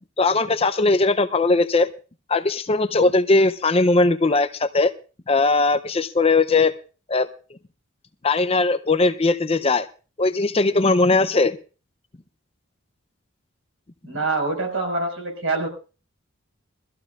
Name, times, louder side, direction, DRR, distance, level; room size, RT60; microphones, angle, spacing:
voice 1, 0.2-1.9 2.3-4.9 5.3-6.7 7.1-7.3 8.2-9.9 10.2-11.6, left 3 dB, 30° left, 10 dB, 0.6 m, -19 dB
voice 2, 14.0-15.7, right 3 dB, 70° right, 4 dB, 5.1 m, -25 dB
22.5 x 14.0 x 2.4 m, 0.35 s
head